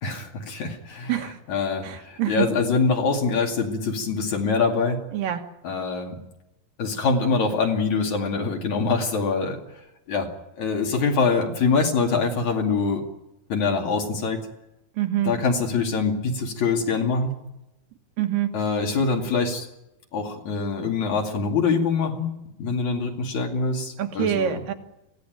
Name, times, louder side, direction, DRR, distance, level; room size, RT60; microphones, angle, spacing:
voice 1, 0.0-5.0 5.6-6.3 6.8-9.6 10.1-10.3 10.6-13.0 13.5-14.4 15.2-17.3 18.5-19.7 20.1-22.3 22.6-24.6, left 4 dB, 55° left, 2 dB, 3.7 m, -24 dB
voice 2, 1.8-2.5 5.1-5.4 15.0-15.3 18.2-18.5 24.0-24.7, right 11 dB, 75° right, 5 dB, 3.1 m, -25 dB
24.0 x 17.0 x 9.3 m, 0.90 s
omnidirectional pair, 4.1 m